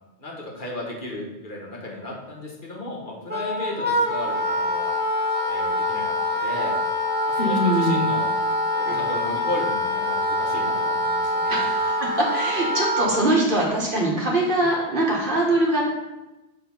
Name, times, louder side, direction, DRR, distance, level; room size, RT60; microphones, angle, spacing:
voice 1, 0.2-4.9 5.5-6.0 6.3-6.8 7.3-8.3 8.7-11.6, left 1 dB, 50° left, -2 dB, 1.3 m, -34 dB
Wind instrument woodwind instrument, 3.3-13.3, left 1 dB, 10° right, 0.7 m, -24 dB
voice 2, 7.3-8.1 8.8-9.0 11.5-15.8, right 1 dB, 50° right, -3 dB, 1.7 m, -23 dB
6.7 x 3.6 x 5.5 m, 1.0 s
omnidirectional pair, 1.1 m